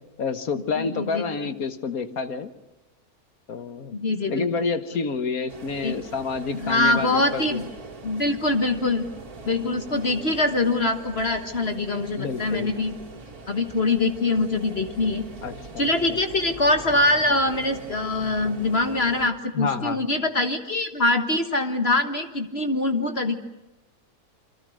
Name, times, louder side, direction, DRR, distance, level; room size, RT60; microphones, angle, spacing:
voice 1, 0.2-2.5 3.5-3.9 4.3-7.7 12.2-12.7 15.4-16.2 19.5-20.0, left 5 dB, 65° left, 10 dB, 1.8 m, -29 dB
voice 2, 0.8-1.5 3.9-4.7 4.9-5.0 5.8-5.9 6.5-7.6 8.0-9.0 9.5-12.9 13.5-15.2 15.8-23.4, left 2 dB, 40° left, 7 dB, 1.7 m, -24 dB
sound 1, 5.5-19.3, right 3 dB, 75° right, 2.9 m, -42 dB
28.0 x 24.0 x 6.5 m, 1.0 s
omnidirectional pair, 1.6 m